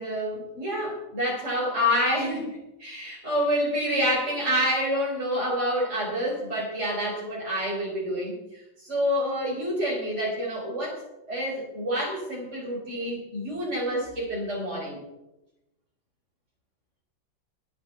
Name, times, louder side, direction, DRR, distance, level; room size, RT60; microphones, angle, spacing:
voice 1, 0.0-8.4 8.8-11.0 11.3-15.0, equal, 35° right, -6 dB, 4.3 m, -28 dB
21.5 x 8.9 x 4.2 m, 0.94 s
omnidirectional pair, 2.2 m